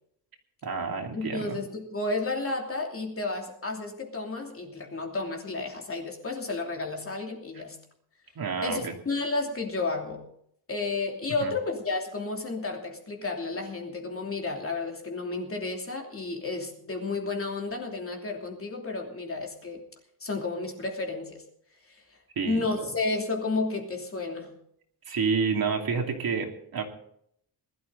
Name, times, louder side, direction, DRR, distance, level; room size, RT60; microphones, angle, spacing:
voice 1, 0.6-1.6 8.4-8.9 11.4-11.5 22.4-22.9 25.1-26.8, right 5 dB, 55° right, 2 dB, 2.8 m, -29 dB
voice 2, 1.1-7.8 8.6-10.2 10.7-19.8 20.2-21.4 21.9-22.0 22.5-24.5, left 3 dB, 30° left, 1 dB, 2.8 m, -32 dB
20.5 x 13.0 x 4.0 m, 0.68 s
wide cardioid pair, 175°, 43 cm